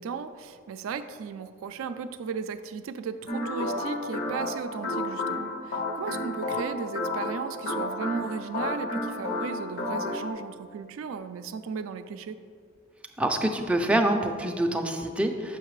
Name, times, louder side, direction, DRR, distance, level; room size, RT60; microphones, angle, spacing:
voice 1, 0.0-12.4, right 6 dB, 85° right, 9 dB, 0.3 m, -36 dB
sound 1, 3.3-10.3, left 2 dB, 55° left, 0.7 m, -31 dB
voice 2, 13.2-15.6, right 1 dB, 5° right, 3 dB, 0.3 m, -26 dB
6.5 x 5.7 x 3.1 m, 2.1 s
head